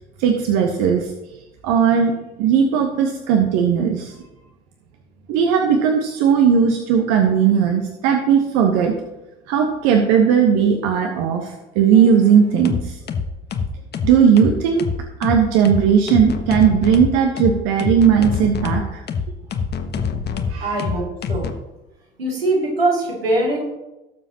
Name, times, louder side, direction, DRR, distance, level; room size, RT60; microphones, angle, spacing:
voice 1, 0.2-1.1 1.6-2.1 2.4-4.1 5.3-8.9 9.5-13.0 14.0-14.9 15.2-19.0 20.5-20.8, right 7 dB, 60° right, 4 dB, 1.1 m, -17 dB
sound 1, 11.9-12.2 12.6-21.5, left 6 dB, 35° left, 1.1 m, -25 dB
voice 2, 20.6-21.5 22.2-23.6, right 2 dB, 85° right, -4 dB, 2.8 m, -22 dB
17.5 x 7.2 x 2.9 m, 0.99 s
figure-of-eight pair, 55°, 29 cm